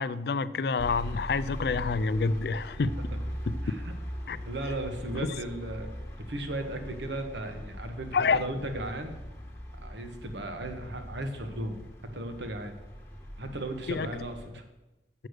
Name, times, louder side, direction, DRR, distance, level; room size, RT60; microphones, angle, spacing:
voice 1, 0.0-2.9 3.5-3.6 4.3-4.4 5.2-5.3 8.1-8.4 13.9-14.1, left 4 dB, 60° left, 16 dB, 0.4 m, -28 dB
sound 1, 0.8-14.5, equal, 15° left, 1.3 m, -40 dB
voice 2, 4.5-5.9 6.3-9.2 9.8-11.8 12.0-12.7 13.4-14.6, right 1 dB, 75° right, 7 dB, 1.1 m, -36 dB
7.5 x 6.4 x 6.5 m, 1.0 s
head